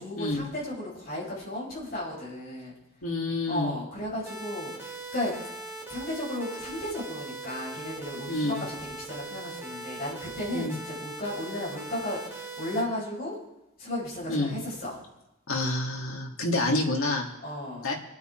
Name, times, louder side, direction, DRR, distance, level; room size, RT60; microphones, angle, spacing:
voice 1, 0.0-2.7 3.5-5.4 5.9-13.4 13.8-15.0 17.4-17.9, left 1 dB, 40° left, -7 dB, 7.5 m, -34 dB
voice 2, 3.0-3.7 8.3-8.6 10.5-10.7 14.3-14.5 15.5-17.3 17.8-17.9, left 2 dB, 75° left, 0 dB, 2.6 m, -28 dB
sound 1, 4.3-12.8, right 2 dB, 10° right, 2.5 m, -40 dB
26.5 x 9.3 x 4.6 m, 0.94 s
head